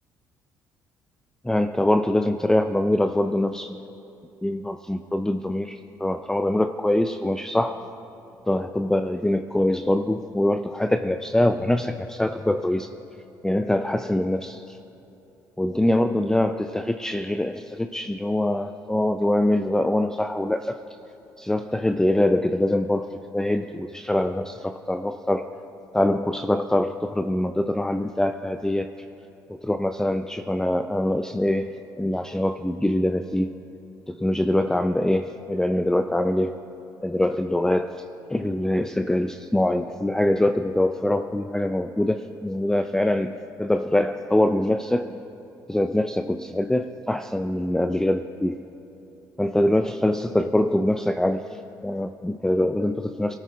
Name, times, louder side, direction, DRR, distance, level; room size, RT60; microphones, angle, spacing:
voice 1, 1.4-3.8 4.4-7.8 8.5-12.9 13.4-14.8 15.6-20.8 21.4-25.5 25.9-28.9 29.6-31.7 32.0-33.5 34.1-36.6 37.0-37.9 38.3-45.1 45.7-48.6 49.4-51.4 51.8-53.4, left 1 dB, 5° left, 8 dB, 0.5 m, -24 dB
22.0 x 13.0 x 2.5 m, 2.9 s
hypercardioid pair, 50°, 9 cm